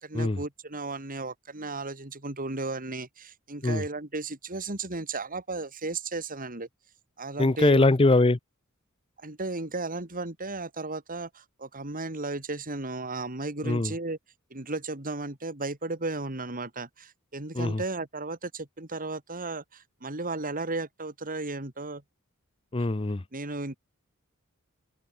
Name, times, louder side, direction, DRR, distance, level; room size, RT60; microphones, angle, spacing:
voice 1, 0.0-6.7 7.2-7.9 9.2-14.2 14.5-22.0 23.3-23.8, right 3 dB, 40° right, 3.4 m, -34 dB
voice 2, 7.4-8.4 13.6-13.9 17.5-17.8 22.7-23.2, left 2 dB, 25° left, 0.7 m, -22 dB
open air
head